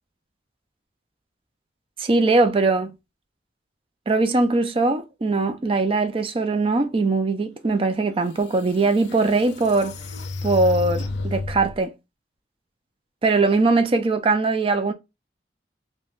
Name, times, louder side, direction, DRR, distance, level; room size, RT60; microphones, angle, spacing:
voice 1, 2.0-2.9 4.1-9.9 10.4-11.9 13.2-14.9, right 3 dB, 30° right, 0.4 m, -21 dB
sound 1, 8.0-8.1 8.7-11.8, left 2 dB, 75° left, 0.5 m, -31 dB
3.3 x 2.1 x 2.4 m
head